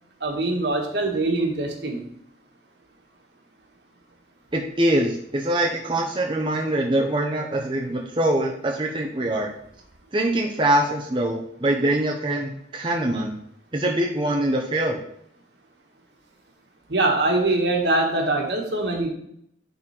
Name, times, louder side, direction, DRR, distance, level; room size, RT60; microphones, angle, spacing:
voice 1, 0.2-2.0 16.9-19.1, right 2 dB, 70° right, 1 dB, 1.7 m, -23 dB
voice 2, 4.5-9.5 10.1-13.4 13.7-15.0, right 1 dB, 30° right, 0 dB, 0.8 m, -23 dB
10.0 x 4.2 x 4.4 m, 0.69 s
head